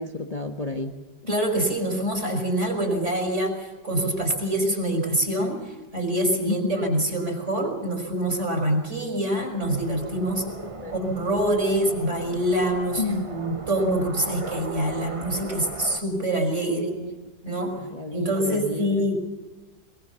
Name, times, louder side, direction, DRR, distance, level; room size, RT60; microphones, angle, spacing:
voice 1, 0.0-1.3 6.4-6.8 10.6-10.9 13.0-13.3 16.7-17.2 17.7-19.1, left 3 dB, 25° left, 3 dB, 1.4 m, -31 dB
voice 2, 1.3-10.5 10.9-16.9 17.4-19.1, right 1 dB, 40° right, 3 dB, 5.7 m, -25 dB
sound 1, 9.6-16.0, right 3 dB, 20° right, 1.2 m, -38 dB
22.5 x 22.5 x 7.0 m, 1.2 s
omnidirectional pair, 1.9 m